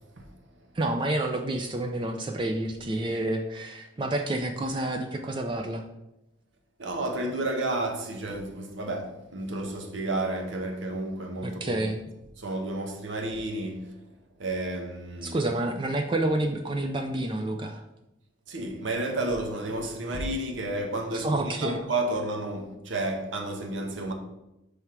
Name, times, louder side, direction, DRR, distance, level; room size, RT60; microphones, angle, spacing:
voice 1, 0.7-5.8 11.4-12.0 15.2-17.8 21.1-21.8, right 1 dB, 25° right, 0.4 m, -29 dB
voice 2, 6.8-11.8 12.4-13.9 14.4-15.4 18.5-24.1, right 2 dB, 80° right, 0.9 m, -31 dB
5.9 x 3.4 x 4.6 m
head